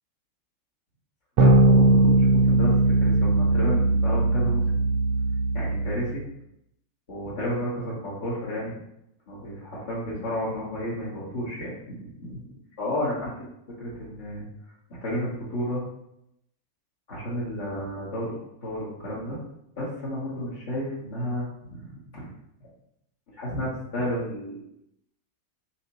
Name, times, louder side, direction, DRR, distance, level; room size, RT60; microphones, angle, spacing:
voice 1, 1.4-4.8 5.5-6.2 7.1-8.7 9.3-14.5 14.9-15.8 17.1-19.4 19.8-22.3 23.3-24.6, equal, 55° left, -8 dB, 1.0 m, -32 dB
sound 1, 1.4-6.1, right 2 dB, 45° right, 0.4 m, -20 dB
2.7 x 2.6 x 3.0 m, 0.78 s
figure-of-eight pair, 90°, 0 cm